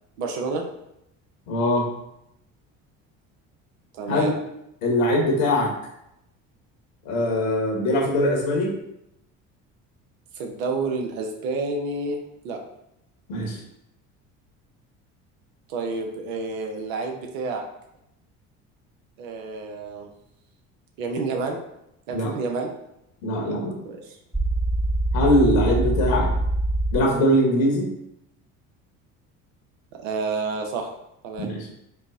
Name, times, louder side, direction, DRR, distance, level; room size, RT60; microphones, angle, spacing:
voice 1, 0.2-0.6 3.9-4.3 10.4-12.2 12.4-12.6 15.7-17.6 19.2-20.1 21.0-21.6 22.1-22.7 23.5-23.6 23.8-24.2 29.9-30.9 31.2-31.5, right 3 dB, 80° right, 3 dB, 0.8 m, -29 dB
voice 2, 1.5-1.9 4.1-4.3 4.8-5.7 7.0-8.7 13.3-13.6 22.1-22.3 23.2-23.8 25.1-26.3 26.9-27.9 31.4-31.7, left 1 dB, 75° left, -1 dB, 1.2 m, -21 dB
sound 1, 24.3-27.0, right 1 dB, 5° right, 0.6 m, -23 dB
4.6 x 2.1 x 3.6 m, 0.81 s
hypercardioid pair, 70°, 39 cm